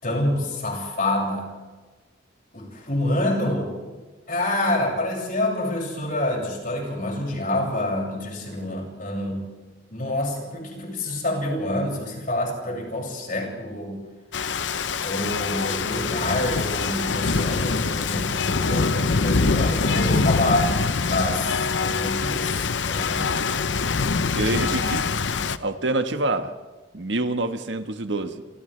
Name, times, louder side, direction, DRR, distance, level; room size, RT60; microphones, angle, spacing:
voice 1, 0.0-1.5 2.5-3.8 4.3-9.4 9.9-14.0 15.0-20.7 21.1-23.4, left 1 dB, 50° left, 6.6 m, -27 dB
Rain, 14.3-25.6, left 4 dB, 85° left, 0.8 m, -24 dB
voice 2, 24.4-25.1 25.6-26.5 26.9-28.4, right 2 dB, 75° right, 1.4 m, -26 dB
28.0 x 28.0 x 3.4 m
head